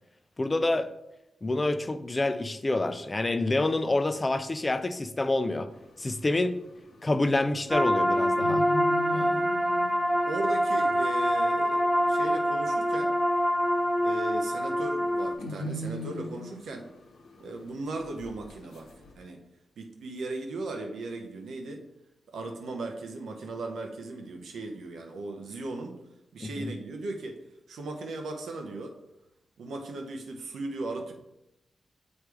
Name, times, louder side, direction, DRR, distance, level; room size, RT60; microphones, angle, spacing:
voice 1, 0.4-0.9 1.4-5.7 6.0-6.6 7.0-8.6 26.4-26.7, left 2 dB, 30° left, 11 dB, 0.5 m, -27 dB
sound 1, 5.7-19.1, equal, 90° left, 1.1 m, -42 dB
sound 2, 7.7-15.3, equal, 15° right, 0.7 m, -25 dB
voice 2, 10.2-13.1 14.0-16.9 17.4-18.9 19.2-19.4 19.8-21.8 22.3-25.9 26.3-27.4 27.7-28.9 29.6-31.1, right 2 dB, 85° right, 4 dB, 0.9 m, -37 dB
7.3 x 3.3 x 4.8 m, 0.87 s
cardioid pair, 60°, 0 cm